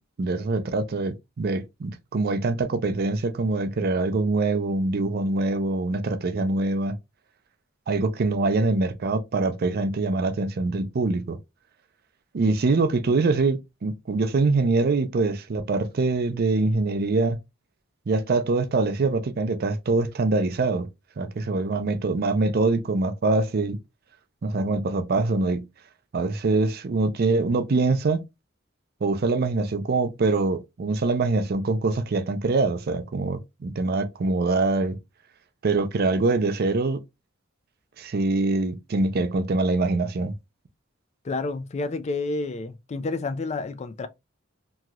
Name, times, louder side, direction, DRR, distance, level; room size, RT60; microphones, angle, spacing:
voice 1, 0.2-7.0 7.9-11.4 12.3-17.4 18.1-20.9 21.2-23.8 24.4-25.7 26.1-28.2 29.0-35.0 35.6-37.0 38.0-40.3, right 3 dB, 50° right, 0.5 m, -24 dB
voice 2, 41.2-44.1, left 3 dB, 35° left, 0.4 m, -29 dB
3.0 x 2.8 x 2.3 m
head